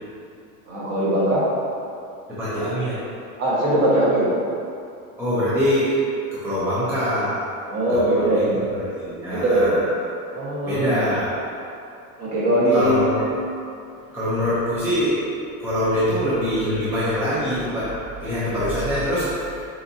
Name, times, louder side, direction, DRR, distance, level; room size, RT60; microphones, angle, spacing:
voice 1, 0.7-1.4 3.4-4.3 7.7-8.6 9.3-9.7 10.3-10.9 12.2-13.0, right 1 dB, 35° right, -7 dB, 1.3 m, -20 dB
voice 2, 2.3-3.0 5.2-6.0 6.3-7.4 7.9-8.4 8.8-9.9 10.6-11.3 12.7-13.3 14.0-15.2 15.6-19.6, equal, 5° right, -11 dB, 0.6 m, -24 dB
6.4 x 2.7 x 2.7 m, 2.5 s
supercardioid pair, 140°, 45 cm